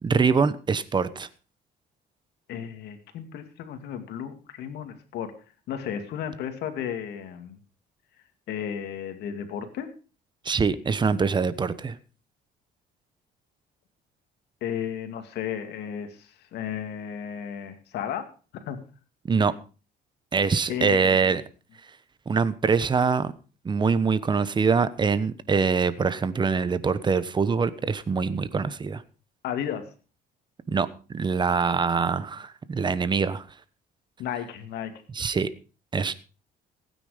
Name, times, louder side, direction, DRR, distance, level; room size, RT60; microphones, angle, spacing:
voice 1, 0.0-1.3 10.4-12.0 19.3-19.5 20.3-21.4 22.3-23.3 23.6-29.0 30.7-33.4 35.1-35.5 35.9-36.1, right 5 dB, 25° right, 1.1 m, -24 dB
voice 2, 2.5-5.3 5.7-7.6 8.5-9.9 14.6-18.8 20.7-21.3 29.4-29.9 34.2-35.0, left 9 dB, 75° left, 2.4 m, -34 dB
16.0 x 9.4 x 5.1 m
cardioid pair, 110°, 17 cm